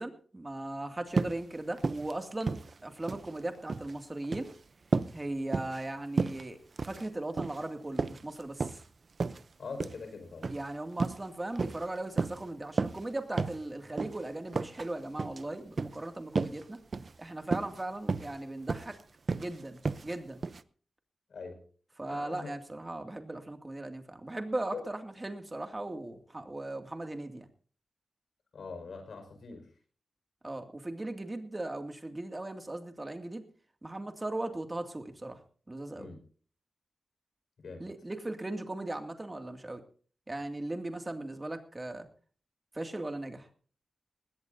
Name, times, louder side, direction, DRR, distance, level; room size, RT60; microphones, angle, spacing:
voice 1, 0.0-4.5 5.1-8.7 10.5-16.8 17.2-19.0 19.4-20.4 22.0-27.5 30.4-33.4 33.8-35.4 35.7-36.1 37.8-39.8 40.3-42.1 42.7-43.5, right 2 dB, 25° right, 5 dB, 2.4 m, -38 dB
sound 1, 1.1-1.4 1.8-2.1 2.4-3.3 3.6-3.9 4.2-4.5 4.9-5.2 5.5-5.8 6.2-6.4 6.8-7.1 7.4-7.6 8.0-8.8 9.2-9.4 9.8-10.0 10.4-10.6 11.0-11.2 11.6-11.9 12.2-12.4 12.8-13.0 13.4-13.6 14.0-14.2 14.5-14.9 15.2-15.4 15.8-16.0 16.4-16.6 16.9-17.1 17.5-17.8 18.1-18.4 18.7-19.0 19.3-19.5 19.9-20.2 20.4-20.6, right 4 dB, 50° right, 0.7 m, -32 dB
voice 2, 9.6-10.5 21.3-21.6 22.1-22.5 24.7-24.9 28.5-29.7 36.0-36.2 37.6-37.9, left 4 dB, 75° left, 6 dB, 5.4 m, -43 dB
20.0 x 17.5 x 2.8 m, 0.44 s
wide cardioid pair, 85°, 0 cm